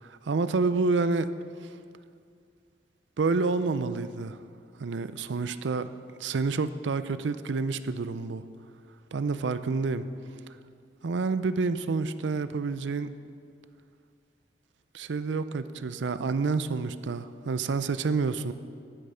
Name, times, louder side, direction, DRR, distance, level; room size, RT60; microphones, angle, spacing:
voice 1, 0.0-1.3 3.2-4.4 4.8-5.9 6.2-8.4 9.1-10.1 11.0-13.1 14.9-18.5, right 4 dB, 90° right, 13 dB, 0.5 m, -28 dB
11.5 x 9.3 x 5.6 m, 2.2 s
head